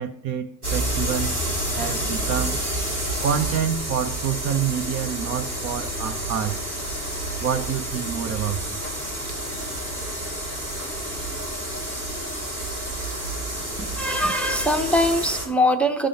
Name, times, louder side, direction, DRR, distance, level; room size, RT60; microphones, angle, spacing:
voice 1, 0.0-1.4 1.8-2.6 3.2-6.6 7.4-8.8, right 8 dB, 35° right, 0.6 m, -27 dB
sound 1, 0.6-15.5, right 1 dB, 90° right, 2.3 m, -29 dB
voice 2, 13.8-16.1, left 1 dB, 5° left, 0.6 m, -22 dB
13.0 x 6.2 x 2.9 m
figure-of-eight pair, 65°, 45 cm